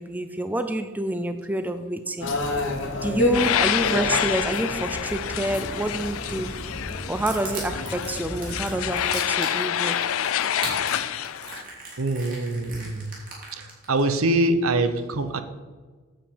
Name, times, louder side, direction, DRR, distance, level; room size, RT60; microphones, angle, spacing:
voice 1, 0.0-2.3 3.0-6.6 7.1-10.0, right 1 dB, 10° right, 0.4 m, -28 dB
sound 1, 2.2-9.0, left 1 dB, 65° left, 1.2 m, -30 dB
sound 2, 3.3-11.6, left 10 dB, 80° left, 0.4 m, -27 dB
Crushing, 7.3-14.0, right 4 dB, 40° right, 2.9 m, -38 dB
voice 2, 12.0-13.2 13.5-15.4, right 2 dB, 85° right, 0.8 m, -24 dB
9.1 x 7.7 x 4.6 m
head